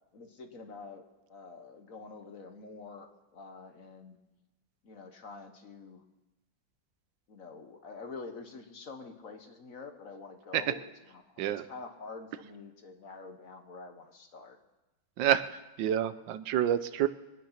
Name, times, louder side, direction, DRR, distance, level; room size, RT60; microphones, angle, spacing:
voice 1, 0.1-4.2 4.8-6.0 7.3-10.8 11.1-14.6, left 4 dB, 50° left, 6 dB, 1.5 m, -47 dB
voice 2, 15.2-17.1, right 10 dB, 80° right, 13 dB, 1.4 m, -28 dB
23.0 x 9.4 x 5.8 m, 1.0 s
omnidirectional pair, 2.0 m